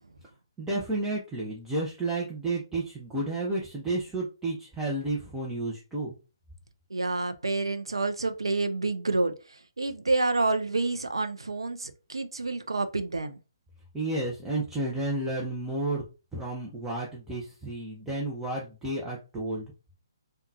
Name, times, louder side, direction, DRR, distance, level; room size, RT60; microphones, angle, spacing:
voice 1, 0.6-6.1 13.9-16.0 16.3-19.6, right 2 dB, 10° right, 0.6 m, -31 dB
voice 2, 6.9-13.4, right 3 dB, 85° right, 0.4 m, -28 dB
3.6 x 2.2 x 2.7 m
figure-of-eight pair, 140°, 3 cm